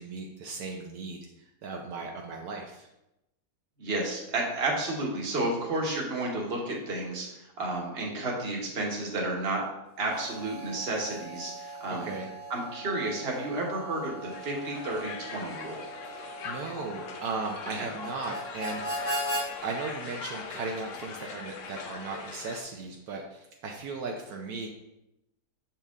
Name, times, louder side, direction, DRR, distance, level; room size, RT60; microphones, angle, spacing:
voice 1, 0.0-2.9 11.9-12.3 16.4-19.2 19.6-24.7, right 3 dB, 75° right, 1 dB, 1.2 m, -37 dB
voice 2, 3.8-9.6 10.0-12.1 12.5-15.8 17.8-17.9, right 2 dB, 40° right, -1 dB, 1.4 m, -31 dB
Harmonica, 9.9-19.5, equal, 15° left, 0.6 m, -39 dB
Crowd, 14.3-22.6, left 5 dB, 60° left, 0.9 m, -42 dB
6.7 x 4.4 x 3.6 m, 0.91 s
omnidirectional pair, 1.7 m